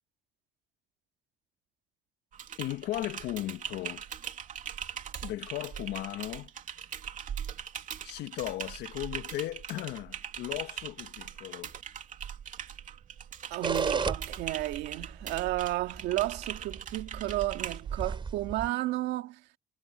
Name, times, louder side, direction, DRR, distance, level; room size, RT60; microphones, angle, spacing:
Typing, 2.3-18.0, right 8 dB, 50° right, 2.8 m, -41 dB
voice 1, 2.6-4.0 5.2-6.5 8.0-11.7, left 15 dB, 80° left, 1.3 m, -36 dB
voice 2, 13.5-19.4, right 16 dB, 90° right, 2.1 m, -32 dB
sound 1, 13.6-18.7, right 5 dB, 30° right, 4.2 m, -35 dB
cardioid pair, 110°, 17 cm